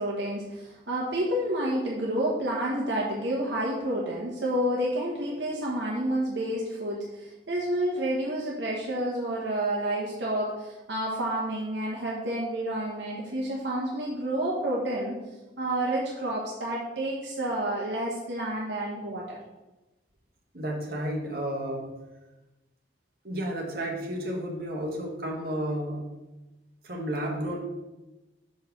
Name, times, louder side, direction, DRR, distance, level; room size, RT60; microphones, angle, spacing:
voice 1, 0.0-15.2 15.6-19.4, right 1 dB, 70° right, -4 dB, 1.2 m, -29 dB
voice 2, 20.5-21.9 23.2-26.0 26.8-27.6, right 1 dB, 55° right, -1 dB, 1.5 m, -32 dB
6.3 x 4.8 x 5.8 m, 1.1 s
head